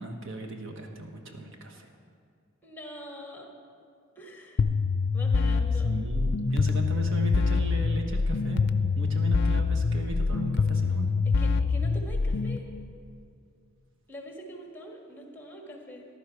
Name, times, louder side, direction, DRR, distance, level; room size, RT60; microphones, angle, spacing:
voice 1, 0.0-1.9 5.9-8.7 8.9-11.1, right 1 dB, 65° right, 2 dB, 1.3 m, -36 dB
voice 2, 2.6-3.5 4.1-4.6 5.1-5.9 11.4-12.6 14.1-16.1, equal, 10° left, 1 dB, 1.6 m, -43 dB
sound 1, 4.6-12.6, left 4 dB, 55° left, 0.4 m, -25 dB
15.0 x 11.0 x 4.7 m, 2.3 s
head